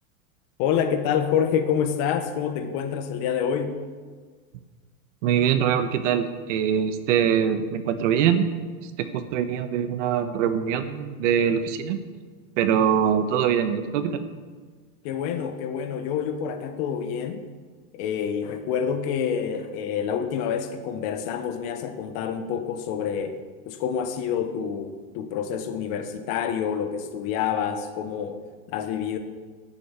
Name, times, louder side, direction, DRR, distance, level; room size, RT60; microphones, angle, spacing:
voice 1, 0.6-3.8 15.0-17.4 17.9-28.4 28.7-29.2, left 8 dB, 45° left, 8 dB, 1.3 m, -27 dB
voice 2, 5.2-8.5 8.8-12.0 12.6-14.2, right 8 dB, 55° right, 10 dB, 1.2 m, -23 dB
12.0 x 7.5 x 8.3 m, 1.5 s
supercardioid pair, 155°, 43 cm